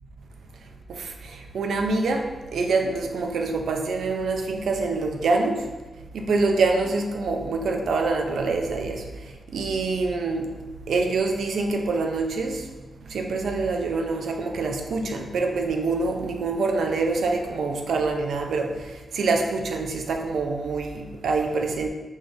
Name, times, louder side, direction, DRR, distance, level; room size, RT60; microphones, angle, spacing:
voice 1, 0.9-5.7 6.1-10.5 10.9-12.7 13.1-21.9, right 3 dB, 80° right, 4 dB, 0.5 m, -25 dB
5.3 x 3.2 x 2.6 m, 1.2 s
cardioid pair, 70°, 0 cm